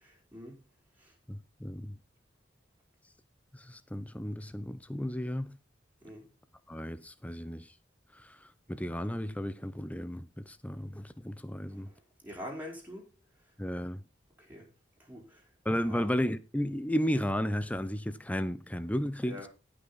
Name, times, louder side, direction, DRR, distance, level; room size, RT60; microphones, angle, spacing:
voice 1, 1.3-2.0 3.5-5.5 6.7-7.7 8.2-8.4 8.7-11.9 13.6-14.0 15.6-19.5, equal, 10° left, 0.8 m, -33 dB
voice 2, 12.2-13.0 14.4-14.7 15.1-15.4 15.9-16.1 19.3-19.5, left 1 dB, 10° right, 4.2 m, -44 dB
18.0 x 6.0 x 4.2 m
head